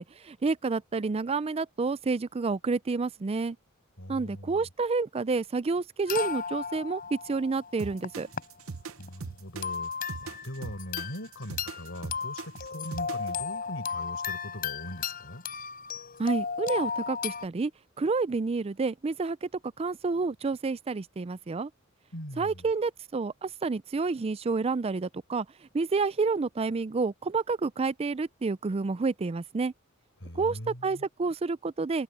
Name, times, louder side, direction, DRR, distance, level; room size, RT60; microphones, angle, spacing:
voice 1, 0.0-3.6 4.1-8.3 16.2-17.7 18.0-19.5 19.8-21.7 22.4-25.5 25.7-29.7 30.4-32.0, right 4 dB, 30° right, 0.4 m, -29 dB
voice 2, 4.0-4.7 9.0-15.4 22.1-22.7 30.2-31.1, equal, 65° left, 7.2 m, -41 dB
sound 1, 6.1-8.4 8.9-9.1 9.6-11.3 11.6-17.5, left 6 dB, 45° left, 5.9 m, -35 dB
sound 2, 7.8-13.4, right 4 dB, 80° right, 0.8 m, -40 dB
head